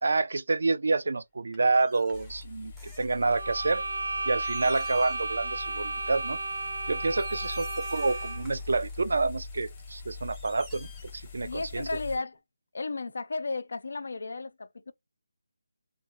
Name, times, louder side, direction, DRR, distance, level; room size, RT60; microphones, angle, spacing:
voice 1, 0.0-2.7 3.0-3.8 4.3-6.4 6.9-10.9 11.1-11.9, right 3 dB, 65° right, 0.4 m, -28 dB
sound 1, 1.5-3.5 4.0-4.1 4.4-5.4 5.7-6.0 6.6-6.7 7.1-8.9 9.5-11.5 11.8-11.9, equal, ahead, 0.5 m, -53 dB
sound 2, 2.1-12.2, left 4 dB, 25° left, 0.8 m, -43 dB
sound 3, 3.3-8.6, right 2 dB, 85° right, 0.9 m, -34 dB
voice 2, 11.4-12.4 12.7-14.9, left 3 dB, 65° left, 0.4 m, -34 dB
2.1 x 2.1 x 2.9 m
figure-of-eight pair, 165°, 0 cm